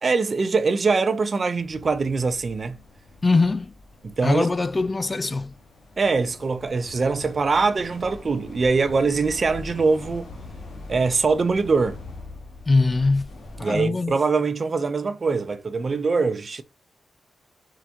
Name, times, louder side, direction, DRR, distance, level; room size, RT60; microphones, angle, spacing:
voice 1, 0.0-2.8 4.0-4.5 6.0-10.3 10.9-12.0 13.6-16.6, right 4 dB, 45° right, 0.7 m, -23 dB
sound 1, 1.5-13.8, left 2 dB, 80° left, 1.6 m, -43 dB
voice 2, 3.2-3.7 4.2-5.5 12.7-13.3 13.6-14.2, left 3 dB, 30° left, 0.4 m, -22 dB
4.8 x 3.5 x 2.9 m
cardioid pair, 75°, 0 cm